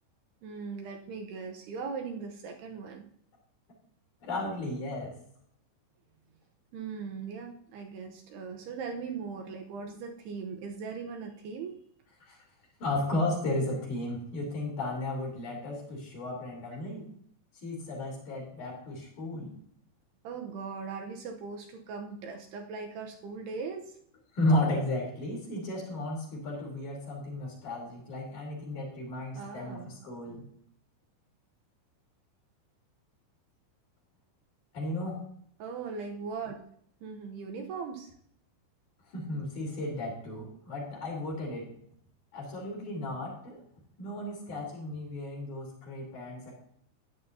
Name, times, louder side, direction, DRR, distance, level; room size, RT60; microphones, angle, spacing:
voice 1, 0.4-3.1 6.7-11.8 20.2-24.0 29.4-30.0 35.6-36.6 37.0-38.1, right 5 dB, 75° right, 2 dB, 2.7 m, -39 dB
voice 2, 4.2-5.1 12.2-12.4 12.8-17.1 17.6-19.5 24.3-30.5 34.7-35.2 39.1-41.7 42.3-43.6 44.0-46.5, left 1 dB, 45° left, -2 dB, 4.7 m, -34 dB
14.5 x 10.0 x 2.8 m, 0.66 s
omnidirectional pair, 5.2 m